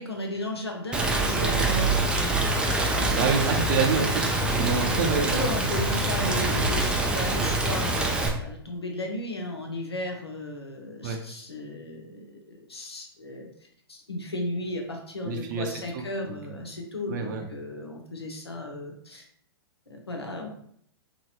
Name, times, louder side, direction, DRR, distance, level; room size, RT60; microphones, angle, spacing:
voice 1, 0.0-2.5 3.0-3.3 5.2-13.5 13.9-19.2 19.9-20.5, left 1 dB, 90° left, 1 dB, 0.7 m, -35 dB
Rain, 0.9-8.3, right 2 dB, 5° right, 0.3 m, -25 dB
voice 2, 3.2-5.4 11.0-11.2 15.2-16.4 17.1-17.5, right 5 dB, 50° right, 4 dB, 0.6 m, -28 dB
3.0 x 2.9 x 2.4 m, 0.65 s
figure-of-eight pair, 110°, 13 cm